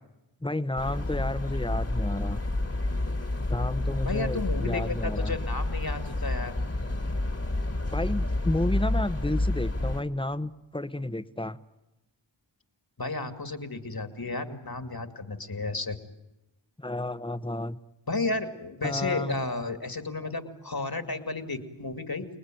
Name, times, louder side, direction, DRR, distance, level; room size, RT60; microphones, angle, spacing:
voice 1, 0.4-2.4 3.5-5.4 7.9-11.6 16.8-17.8 18.8-19.4, left 1 dB, 10° left, 12 dB, 1.1 m, -31 dB
sound 1, 0.8-10.0, left 2 dB, 30° left, 2.0 m, -29 dB
voice 2, 4.0-6.6 13.0-16.0 18.1-22.3, left 3 dB, 50° left, 8 dB, 2.5 m, -33 dB
29.5 x 20.0 x 9.2 m, 0.96 s
wide cardioid pair, 45°, 45 cm